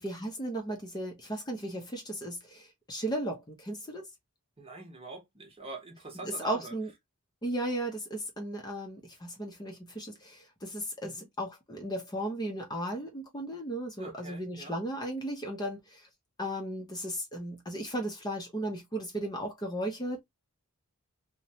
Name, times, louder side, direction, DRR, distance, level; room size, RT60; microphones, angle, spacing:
voice 1, 0.0-4.0 6.2-6.9 7.4-16.1 16.4-20.2, right 1 dB, 20° left, 0.5 m, -35 dB
voice 2, 4.6-6.7 11.0-11.3 14.0-14.8, right 3 dB, 25° right, 0.9 m, -44 dB
2.9 x 2.1 x 2.7 m
head